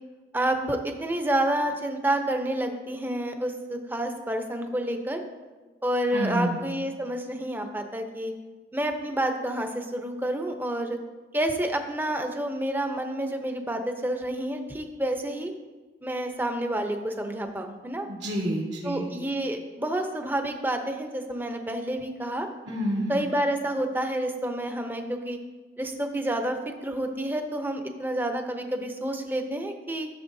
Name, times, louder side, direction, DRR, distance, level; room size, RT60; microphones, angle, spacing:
voice 1, 0.3-5.2 5.8-8.3 8.7-11.0 11.3-15.5 16.0-18.1 18.8-22.5 23.1-25.4 25.8-30.1, right 1 dB, 10° right, 5 dB, 0.7 m, -29 dB
voice 2, 6.1-6.6 18.1-19.1 22.7-23.2, equal, 90° right, -5 dB, 2.6 m, -28 dB
15.0 x 6.7 x 2.7 m, 1.3 s
head